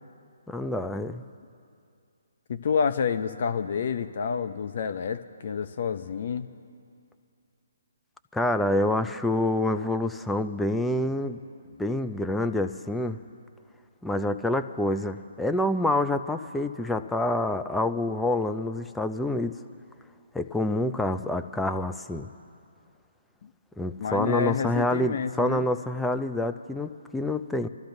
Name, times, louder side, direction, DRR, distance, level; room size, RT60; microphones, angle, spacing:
voice 1, 0.5-1.2 8.3-11.4 11.8-13.2 14.0-19.6 20.3-22.3 23.8-27.7, left 1 dB, 5° left, 8 dB, 0.4 m, -27 dB
voice 2, 2.5-6.5 23.4-23.5 24.0-25.7, left 6 dB, 55° left, 9 dB, 0.7 m, -29 dB
28.0 x 13.0 x 2.7 m, 2.4 s
figure-of-eight pair, 140°, 0 cm